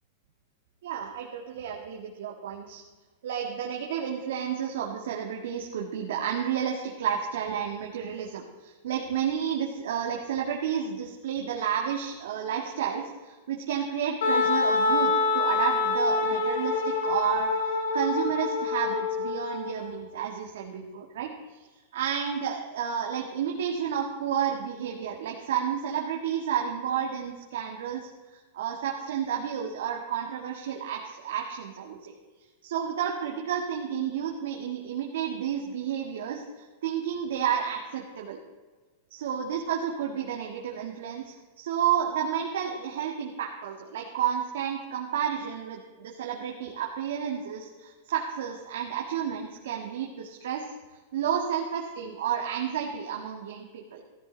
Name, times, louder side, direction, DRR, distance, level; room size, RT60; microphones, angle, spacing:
voice 1, 0.8-2.8 3.2-21.7 21.9-32.1 32.6-38.4 39.2-50.7 51.1-54.0, right 8 dB, 80° right, 0 dB, 1.9 m, -31 dB
Wind instrument woodwind instrument, 14.2-19.8, left 4 dB, 85° left, 3.8 m, -26 dB
15.0 x 13.0 x 4.0 m, 1.3 s
supercardioid pair, 165°, 0 cm